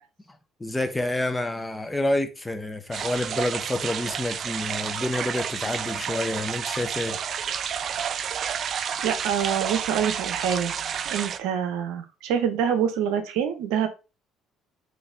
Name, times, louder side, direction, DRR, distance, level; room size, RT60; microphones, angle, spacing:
voice 1, 0.6-7.2, left 1 dB, 15° left, 0.8 m, -28 dB
sound 1, 2.9-11.4, right 8 dB, 55° right, 0.3 m, -30 dB
voice 2, 8.5-10.7 11.1-13.9, right 8 dB, 80° right, 0.7 m, -26 dB
4.1 x 2.6 x 3.4 m
hypercardioid pair, 65°, 0 cm